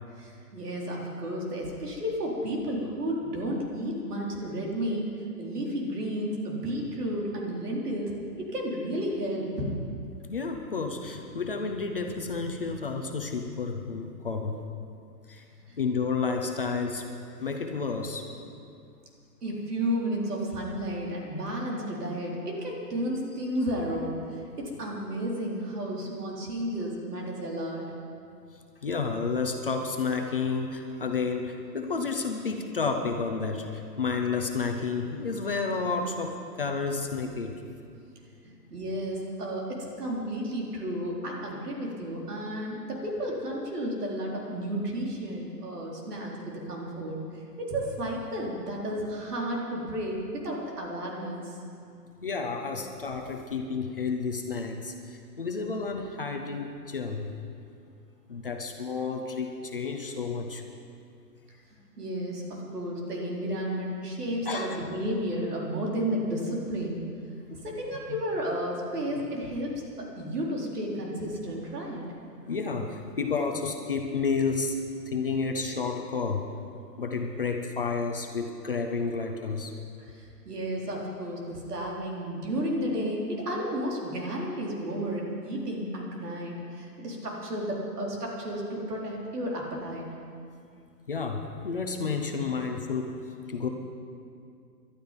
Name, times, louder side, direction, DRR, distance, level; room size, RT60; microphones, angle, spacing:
voice 1, 0.2-5.1 5.4-9.7 15.6-15.8 19.4-27.8 38.4-47.2 47.6-51.6 62.0-67.1 67.5-72.0 80.1-90.1, equal, 65° right, -2 dB, 4.0 m, -32 dB
voice 2, 10.3-14.6 15.3-15.4 15.8-17.0 17.4-18.3 28.8-37.6 52.2-57.3 58.3-60.6 64.5-64.8 67.5-67.6 68.1-68.2 72.5-74.8 75.1-76.4 77.0-79.7 91.1-93.2 93.5-93.7, left 4 dB, 35° left, 3 dB, 0.8 m, -31 dB
19.5 x 11.5 x 5.3 m, 2.4 s
hypercardioid pair, 180°, 49 cm